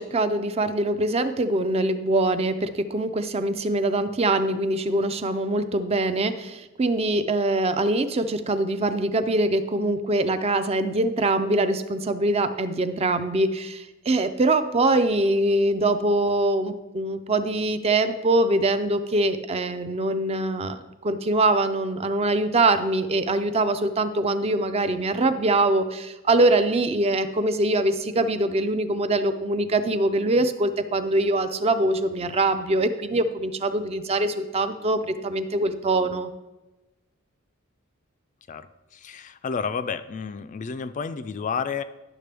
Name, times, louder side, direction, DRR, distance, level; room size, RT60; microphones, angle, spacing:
voice 1, 0.0-36.3, right 2 dB, 30° right, 10 dB, 0.5 m, -23 dB
voice 2, 38.5-41.8, left 6 dB, 35° left, 12 dB, 0.3 m, -31 dB
10.5 x 6.6 x 3.4 m, 1.1 s
head